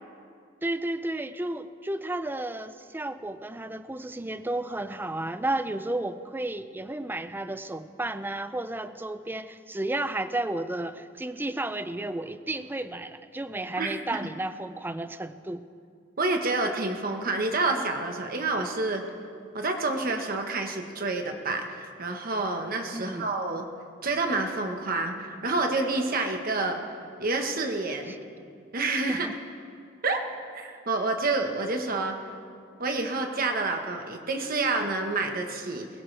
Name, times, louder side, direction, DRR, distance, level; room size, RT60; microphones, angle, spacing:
voice 1, 0.6-15.7 22.9-23.3 28.1-28.2 29.1-29.3, right 2 dB, 10° right, 11 dB, 0.5 m, -32 dB
voice 2, 13.8-14.2 16.2-19.0 19.5-23.7 24.0-26.8 27.2-28.1 28.7-29.3 30.0-30.3 30.5-32.1 32.8-35.9, right 3 dB, 50° right, 4 dB, 1.3 m, -28 dB
21.5 x 16.5 x 3.4 m, 2.3 s
head